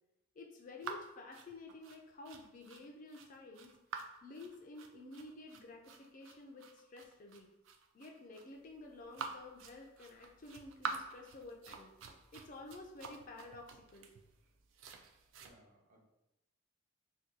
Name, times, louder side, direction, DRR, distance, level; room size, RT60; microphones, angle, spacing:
voice 1, 0.4-3.7 4.2-7.5 7.9-11.9 12.3-14.1, left 2 dB, 40° left, 1 dB, 0.3 m, -51 dB
sound 1, 0.8-15.5, right 5 dB, 65° right, 0.3 m, -48 dB
voice 2, 15.4-16.0, right 1 dB, 40° right, -4 dB, 0.7 m, -65 dB
2.6 x 2.3 x 3.6 m, 0.93 s
head